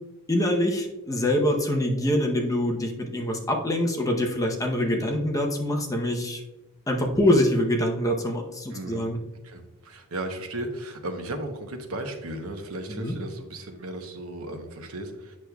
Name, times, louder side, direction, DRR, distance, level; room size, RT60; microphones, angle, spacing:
voice 1, 0.3-6.4 6.9-9.2 12.9-13.1, left 1 dB, 15° left, 1 dB, 0.8 m, -25 dB
voice 2, 8.7-9.1 9.4-15.4, right 1 dB, 75° right, 6 dB, 0.9 m, -35 dB
8.4 x 6.2 x 2.3 m, 0.99 s
head